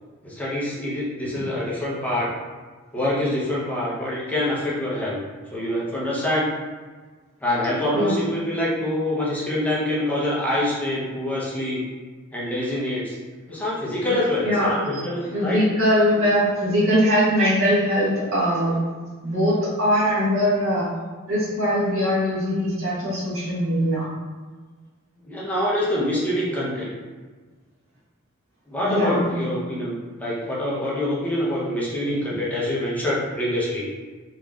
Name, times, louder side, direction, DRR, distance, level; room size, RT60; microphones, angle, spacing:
voice 1, 0.2-2.3 2.9-5.2 5.5-6.5 7.4-11.8 12.3-13.2 13.5-15.6 25.2-26.9 28.7-33.8, left 1 dB, 5° left, -7 dB, 0.7 m, -25 dB
voice 2, 14.4-15.0 15.3-18.8 19.2-20.9 21.3-24.0 28.8-29.3, equal, 80° right, -8 dB, 1.5 m, -21 dB
3.8 x 3.0 x 2.3 m, 1.4 s
head